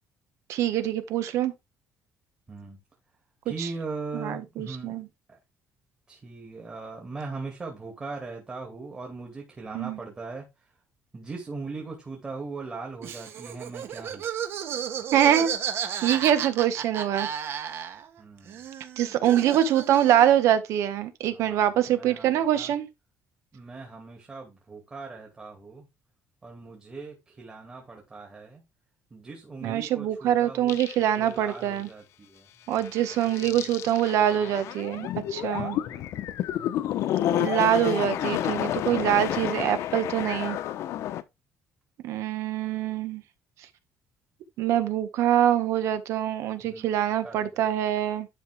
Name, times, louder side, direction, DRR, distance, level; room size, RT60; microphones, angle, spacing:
voice 1, 0.5-1.5 3.6-3.7 4.1-5.1 9.7-10.0 15.1-15.5 16.0-17.3 19.0-22.9 29.6-31.9 32.7-35.8 37.3-40.6 42.0-43.2 44.6-48.3, right 11 dB, 75° right, 1.6 m, -24 dB
voice 2, 3.4-5.0 5.3-5.4 6.1-10.5 11.1-14.2 18.2-18.6 21.3-22.7 23.5-25.9 26.4-28.6 29.1-33.9 34.2-34.5 35.3-36.3 46.6-47.6, right 3 dB, 20° right, 2.5 m, -40 dB
Laughter, 13.0-18.2 18.5-20.4, right 8 dB, 50° right, 1.7 m, -33 dB
sound 1, 30.7-31.3 31.8-31.9 32.7-41.2, left 12 dB, 70° left, 1.0 m, -30 dB
11.5 x 5.4 x 3.6 m
cardioid pair, 165°, 5 cm